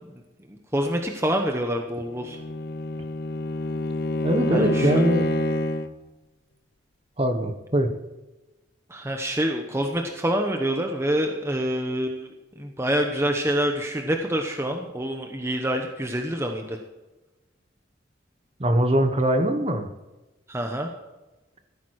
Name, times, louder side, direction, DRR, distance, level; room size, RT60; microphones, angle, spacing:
voice 1, 0.7-2.4 4.5-4.9 8.9-12.3 12.6-16.8 20.5-20.9, right 1 dB, 15° right, 3 dB, 0.9 m, -26 dB
Bowed string instrument, 2.1-6.0, left 1 dB, 55° left, 0.7 m, -27 dB
voice 2, 4.2-5.2 7.2-7.9 18.6-19.9, right 1 dB, 30° right, 7 dB, 1.2 m, -22 dB
16.0 x 9.3 x 4.8 m, 1.1 s
head